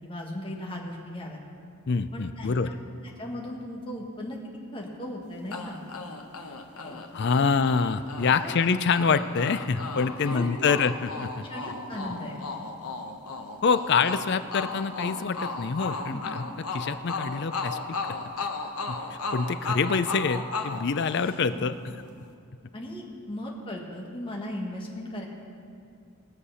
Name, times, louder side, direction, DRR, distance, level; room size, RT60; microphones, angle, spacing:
voice 1, 0.0-1.4 2.1-2.8 3.2-4.4 4.7-5.8 6.8-7.0 7.4-7.5 8.3-8.5 10.2-10.8 11.5-12.4 16.0-16.2 21.4-21.7 22.7-25.3, left 1 dB, 25° left, -2 dB, 1.6 m, -37 dB
voice 2, 1.9-2.7 7.1-11.5 13.6-16.4 16.7-18.0 18.9-19.0 19.3-21.9, left 5 dB, 50° left, 12 dB, 0.4 m, -26 dB
sound 1, 5.5-21.7, left 3 dB, 85° left, 1.0 m, -36 dB
20.0 x 6.7 x 5.6 m, 2.3 s
head